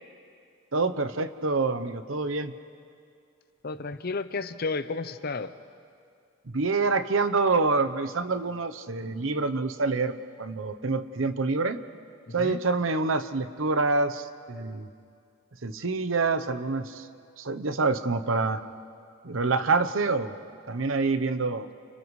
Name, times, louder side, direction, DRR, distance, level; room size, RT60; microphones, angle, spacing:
voice 1, 0.7-2.5 6.5-11.8 12.3-14.9 15.6-17.1 17.4-18.6 19.2-20.3 20.7-21.7, right 3 dB, 90° right, 11 dB, 0.9 m, -26 dB
voice 2, 3.6-5.6 12.3-12.6, left 3 dB, 50° left, 11 dB, 0.8 m, -32 dB
30.0 x 29.5 x 3.3 m, 2.3 s
head